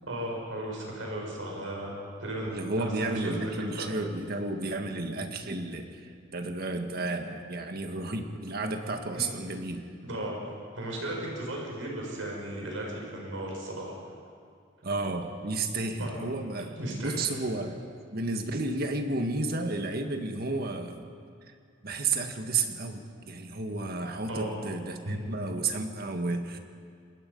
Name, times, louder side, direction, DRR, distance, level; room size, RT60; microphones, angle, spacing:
voice 1, 0.0-3.9 9.1-9.2 10.1-10.4 10.7-13.9 16.0-16.2 16.8-17.1 24.3-24.5 25.0-25.3, right 1 dB, 85° right, -1 dB, 6.3 m, -35 dB
voice 2, 2.5-9.8 14.8-17.8 18.1-21.1 21.8-26.6, right 3 dB, 50° right, 5 dB, 1.8 m, -32 dB
27.0 x 20.5 x 5.5 m, 2.2 s
head